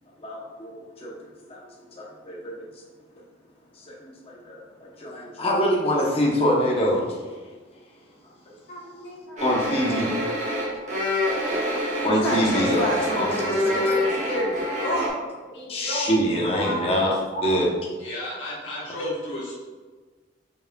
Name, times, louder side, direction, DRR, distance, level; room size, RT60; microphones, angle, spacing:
voice 1, 0.2-1.1 1.5-1.6 1.9-2.6 3.9-7.2 7.4-7.6 8.5-8.6 9.4-10.1 11.7-12.9 13.2-13.6 15.7-17.1 17.4-17.7, equal, 30° left, -3 dB, 0.7 m, -25 dB
voice 2, 8.7-9.4 12.0-15.1 15.5-16.1 16.4-17.8, equal, 65° left, -4 dB, 1.3 m, -30 dB
sound 1, 9.4-15.1, left 1 dB, 40° right, 0.9 m, -26 dB
voice 3, 18.0-19.6, left 1 dB, 85° left, -6 dB, 1.4 m, -32 dB
5.2 x 4.6 x 2.2 m, 1.4 s
head